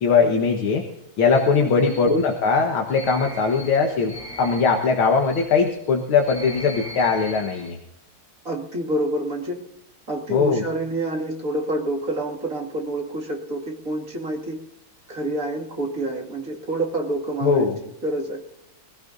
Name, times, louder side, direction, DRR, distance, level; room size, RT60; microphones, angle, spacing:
voice 1, 0.0-0.8 1.2-7.8 10.3-10.6 17.4-17.7, left 5 dB, 75° left, 2 dB, 2.2 m, -20 dB
sound 1, 1.3-7.7, equal, 50° left, 6.1 m, -40 dB
voice 2, 8.4-9.6 10.1-14.6 15.1-17.7 18.0-18.4, right 1 dB, 40° right, -1 dB, 2.6 m, -27 dB
24.0 x 16.0 x 2.7 m, 0.84 s
omnidirectional pair, 2.3 m